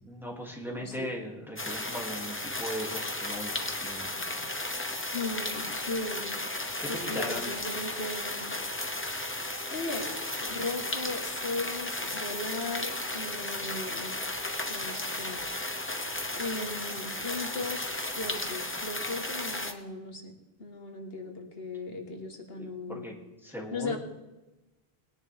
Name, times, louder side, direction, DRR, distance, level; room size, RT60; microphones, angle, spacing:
voice 1, 0.0-4.4 6.8-7.5 22.5-23.1 23.4-24.0, equal, ahead, -2 dB, 2.5 m, -39 dB
voice 2, 0.8-1.1 5.1-6.4 6.9-8.5 9.7-14.4 14.7-15.4 16.3-23.1 23.7-24.0, left 2 dB, 70° left, 2 dB, 1.7 m, -37 dB
sound 1, 1.6-19.7, left 1 dB, 15° left, 0.9 m, -34 dB
20.5 x 10.5 x 3.5 m, 1.0 s
omnidirectional pair, 1.0 m